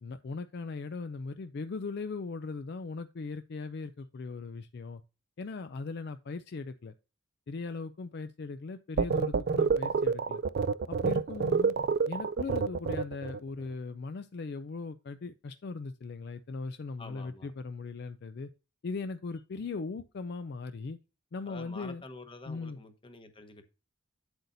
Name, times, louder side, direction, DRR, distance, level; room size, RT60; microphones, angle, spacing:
voice 1, 0.0-5.0 5.4-6.9 7.5-10.4 10.9-11.7 12.1-18.5 18.8-21.0 21.3-22.0 22.5-22.8, left 4 dB, 55° left, 0.4 m, -39 dB
sound 1, 9.0-13.4, right 5 dB, 50° right, 0.3 m, -28 dB
voice 2, 17.0-17.5 21.5-23.6, left 2 dB, 25° left, 1.0 m, -48 dB
8.2 x 8.0 x 2.6 m
head